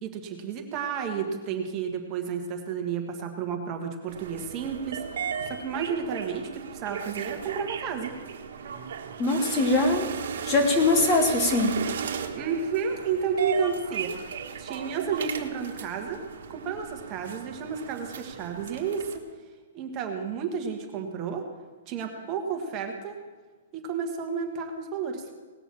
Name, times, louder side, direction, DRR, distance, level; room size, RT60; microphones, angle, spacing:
voice 1, 0.0-8.1 12.3-14.2 14.6-19.2 19.7-21.4 21.9-23.2 23.7-25.3, right 6 dB, 25° right, 3 dB, 1.5 m, -31 dB
sound 1, 4.1-19.2, right 7 dB, 65° right, 1.4 m, -36 dB
voice 2, 9.2-10.1 10.4-11.8, left 2 dB, 20° left, 5 dB, 1.1 m, -22 dB
18.0 x 6.9 x 7.4 m, 1.4 s
hypercardioid pair, 165°, 0 cm